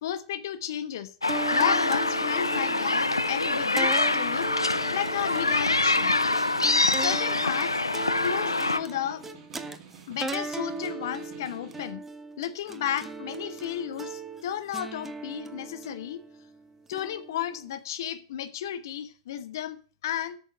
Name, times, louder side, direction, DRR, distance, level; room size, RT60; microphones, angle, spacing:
voice 1, 0.0-1.1 1.5-4.5 4.9-6.1 6.9-7.8 8.2-9.2 10.1-12.0 12.4-16.2 16.9-20.4, left 10 dB, 55° left, 1.2 m, -33 dB
sound 1, 1.2-8.8, left 2 dB, 85° left, 0.6 m, -25 dB
sound 2, 1.3-17.7, right 3 dB, 10° right, 0.9 m, -38 dB
Snare drum, 2.4-11.9, right 7 dB, 30° right, 3.1 m, -51 dB
8.9 x 6.7 x 7.9 m
figure-of-eight pair, 100°, 2 cm